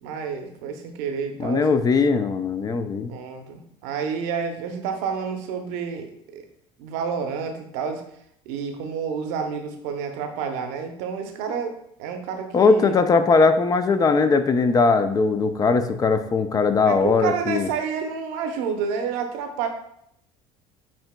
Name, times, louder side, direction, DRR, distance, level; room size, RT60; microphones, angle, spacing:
voice 1, 0.0-1.7 3.1-6.4 6.8-8.0 8.5-13.0 16.9-19.7, right 6 dB, 80° right, 5 dB, 0.7 m, -29 dB
voice 2, 1.4-3.1 12.5-17.7, left 4 dB, 30° left, 9 dB, 0.4 m, -20 dB
7.4 x 2.8 x 2.2 m, 0.72 s
supercardioid pair, 85°, 13 cm